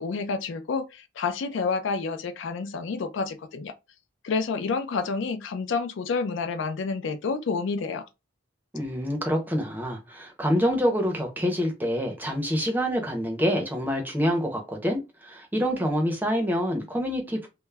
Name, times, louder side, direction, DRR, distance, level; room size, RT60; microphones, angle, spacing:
voice 1, 0.0-3.7 4.2-8.1, left 4 dB, 65° left, 0.3 m, -29 dB
voice 2, 8.7-17.5, equal, 10° right, 0.5 m, -26 dB
2.2 x 2.0 x 3.3 m
head